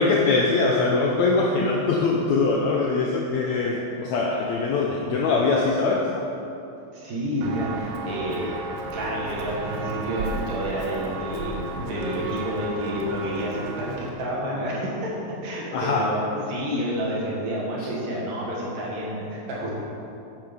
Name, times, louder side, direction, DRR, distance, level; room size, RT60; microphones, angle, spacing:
voice 1, 0.0-6.1 15.7-16.1, left 3 dB, 80° left, -1 dB, 1.7 m, -22 dB
voice 2, 6.9-8.5 8.9-19.8, equal, 65° right, -5 dB, 3.5 m, -29 dB
Walk footsteps, 7.4-14.1, right 3 dB, 90° right, 2.6 m, -33 dB
8.9 x 8.9 x 5.4 m, 2.8 s
omnidirectional pair, 4.0 m